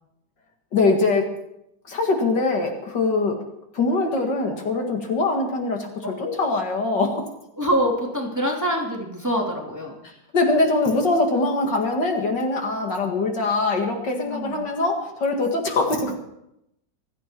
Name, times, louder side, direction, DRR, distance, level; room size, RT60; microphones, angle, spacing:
voice 1, 0.7-1.3 1.9-3.4 3.7-7.3 10.0-16.2, left 3 dB, 65° left, 3 dB, 2.5 m, -23 dB
voice 2, 7.6-10.0 14.0-14.6, equal, 10° right, -2 dB, 3.0 m, -25 dB
26.5 x 9.2 x 4.6 m, 0.82 s
omnidirectional pair, 2.1 m